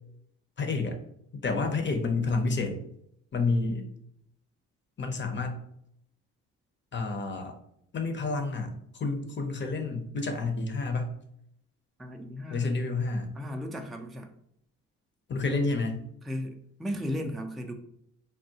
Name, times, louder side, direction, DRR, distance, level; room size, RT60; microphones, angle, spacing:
voice 1, 0.6-1.0 1.3-2.8 3.3-3.9 5.0-5.6 6.9-7.6 7.9-11.1 12.5-13.3 15.3-16.0, left 3 dB, 30° left, 5 dB, 0.7 m, -29 dB
voice 2, 12.0-12.7 13.4-14.3 16.2-16.5 16.8-17.7, equal, ahead, 3 dB, 0.4 m, -35 dB
3.5 x 2.3 x 2.8 m, 0.73 s
hypercardioid pair, 55°, 37 cm